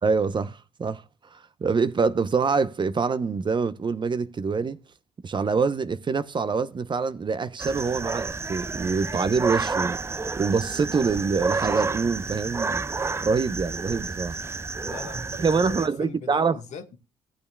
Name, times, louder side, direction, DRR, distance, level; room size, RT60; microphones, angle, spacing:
voice 1, 0.0-1.0 1.3-4.8 5.2-12.8 13.2-14.4 15.4-16.6, right 5 dB, 40° right, 0.8 m, -25 dB
sound 1, 7.6-15.9, right 4 dB, 20° right, 0.4 m, -30 dB
voice 2, 14.8-17.0, left 7 dB, 65° left, 1.5 m, -41 dB
16.5 x 8.5 x 2.3 m
hypercardioid pair, 50°, 13 cm